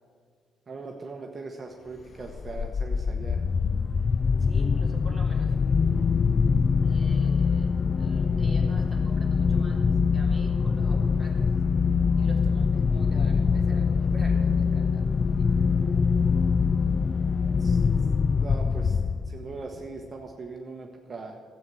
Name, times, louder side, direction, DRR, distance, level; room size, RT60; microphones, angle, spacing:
voice 1, 0.7-3.4 17.6-18.1 18.4-19.0 19.2-21.4, right 3 dB, 35° right, 2 dB, 1.2 m, -40 dB
sound 1, 2.2-19.6, left 5 dB, 40° left, 0.3 m, -24 dB
voice 2, 4.4-5.5 6.8-7.7 8.0-9.9 10.1-11.5 12.2-15.5, right 1 dB, ahead, -1 dB, 3.2 m, -46 dB
13.0 x 8.1 x 7.7 m, 2.1 s
cardioid pair, 90°, 0 cm